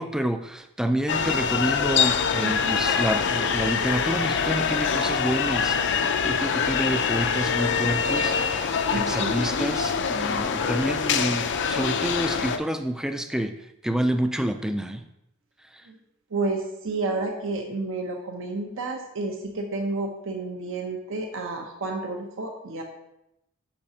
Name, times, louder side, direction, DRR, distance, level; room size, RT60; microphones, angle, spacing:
voice 1, 0.0-15.0 15.7-15.9, right 1 dB, 5° right, 8 dB, 0.3 m, -28 dB
sound 1, 1.1-12.6, left 6 dB, 55° left, 0.5 m, -24 dB
voice 2, 2.4-2.8 8.9-9.4 15.9-16.0 16.3-22.8, right 3 dB, 60° right, 2 dB, 0.8 m, -30 dB
8.6 x 5.6 x 2.8 m, 0.86 s
head